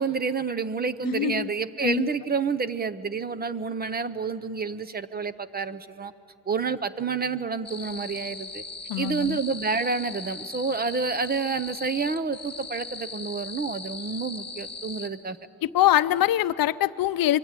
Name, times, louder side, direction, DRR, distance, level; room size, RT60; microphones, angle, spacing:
voice 1, 0.0-6.1 6.5-8.6 9.0-15.4, right 5 dB, 25° right, 12 dB, 0.6 m, -29 dB
voice 2, 1.0-1.5 1.8-2.1 8.9-9.4 15.6-17.4, left 13 dB, 65° left, 14 dB, 0.6 m, -23 dB
sound 1, 7.6-15.1, left 4 dB, 15° left, 1.5 m, -39 dB
26.0 x 23.5 x 8.9 m, 2.6 s
cardioid pair, 160°, 38 cm